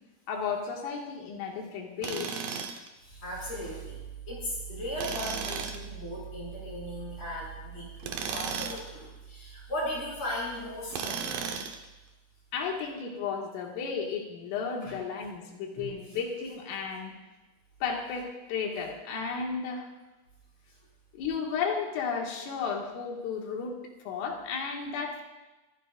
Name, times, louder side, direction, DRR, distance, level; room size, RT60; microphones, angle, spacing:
voice 1, 0.3-2.4 12.5-17.2 17.8-19.9 21.1-23.8 24.1-25.2, left 5 dB, 85° left, 0 dB, 4.7 m, -33 dB
Tools, 2.0-2.9 5.0-5.8 8.0-8.9 10.9-11.8, right 6 dB, 90° right, 1.9 m, -34 dB
voice 2, 3.0-11.5 14.8-14.9 15.7-15.9, equal, 35° left, -5 dB, 7.2 m, -37 dB
26.0 x 15.5 x 2.6 m, 1.1 s
omnidirectional pair, 5.7 m